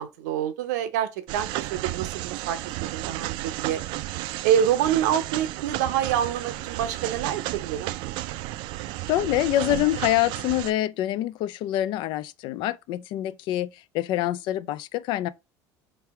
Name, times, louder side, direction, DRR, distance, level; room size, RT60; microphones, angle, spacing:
voice 1, 0.0-3.8 4.4-7.9, right 10 dB, 90° right, 0.7 m, -26 dB
sound 1, 1.3-10.7, right 16 dB, 65° right, 0.3 m, -33 dB
voice 2, 9.1-13.7 13.9-15.3, left 14 dB, 60° left, 0.4 m, -25 dB
3.3 x 3.2 x 4.6 m
supercardioid pair, 110°, 9 cm